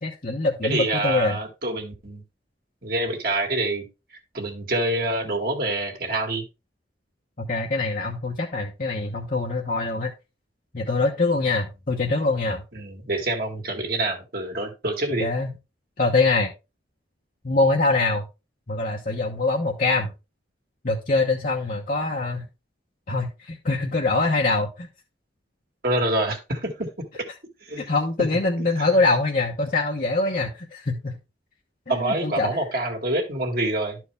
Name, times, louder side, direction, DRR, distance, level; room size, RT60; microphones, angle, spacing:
voice 1, 0.0-1.4 7.4-10.1 10.7-12.6 15.2-15.5 16.0-16.5 17.4-18.2 18.7-20.1 20.8-22.5 23.1-24.9 27.8-31.2 31.9-32.5, left 3 dB, 45° left, -2 dB, 1.1 m, -24 dB
voice 2, 0.6-2.2 2.8-3.8 4.3-6.5 12.7-15.3 25.8-27.2 27.6-28.0 28.6-28.9 31.9-34.0, right 2 dB, 50° right, 2 dB, 2.0 m, -26 dB
12.0 x 4.7 x 3.4 m, 0.27 s
head